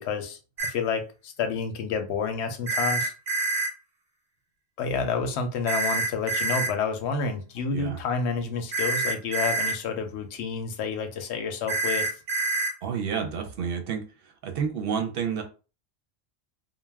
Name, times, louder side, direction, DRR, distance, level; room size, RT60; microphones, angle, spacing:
voice 1, 0.0-3.1 4.8-12.1, left 5 dB, 90° left, 6 dB, 0.9 m, -29 dB
sound 1, 0.6-0.7 2.7-3.7 5.7-6.7 8.7-9.7 11.7-12.7, right 3 dB, 40° right, 0.3 m, -26 dB
voice 2, 7.7-8.0 12.8-15.4, right 7 dB, 65° right, 5 dB, 0.7 m, -30 dB
2.3 x 2.1 x 3.3 m, 0.34 s
omnidirectional pair, 1.1 m